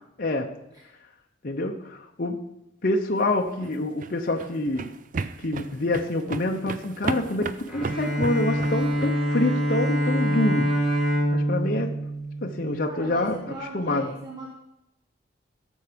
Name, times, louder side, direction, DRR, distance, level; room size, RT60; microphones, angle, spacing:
voice 1, 0.2-0.5 1.4-2.4 2.8-4.9 5.4-10.7 11.3-11.9 12.4-14.1, left 2 dB, 45° left, 2 dB, 0.8 m, -26 dB
sound 1, 3.5-9.1, right 3 dB, 40° right, 0.4 m, -34 dB
Bowed string instrument, 7.7-13.1, equal, ahead, 3.4 m, -25 dB
voice 2, 12.9-14.5, right 1 dB, 20° right, -3 dB, 1.4 m, -38 dB
15.5 x 7.2 x 5.1 m, 0.86 s
head